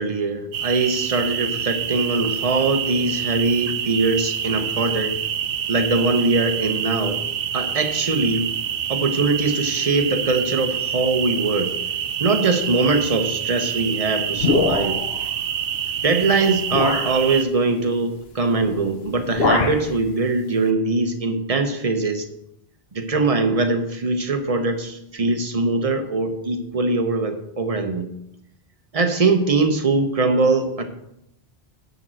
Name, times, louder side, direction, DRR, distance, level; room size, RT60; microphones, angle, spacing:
voice 1, 0.0-5.2 5.7-7.2 7.5-8.5 8.9-11.7 12.2-15.0 16.0-22.3 22.9-28.1 28.9-30.8, right 3 dB, 35° right, 6 dB, 1.0 m, -22 dB
sound 1, 0.5-17.4, right 8 dB, 65° right, 0.8 m, -27 dB
sound 2, 14.4-15.2 16.1-16.2 16.7-17.2 18.6-18.8 19.1-19.9, left 3 dB, 75° left, 1.2 m, -22 dB
10.5 x 4.1 x 7.6 m, 0.80 s
omnidirectional pair, 1.0 m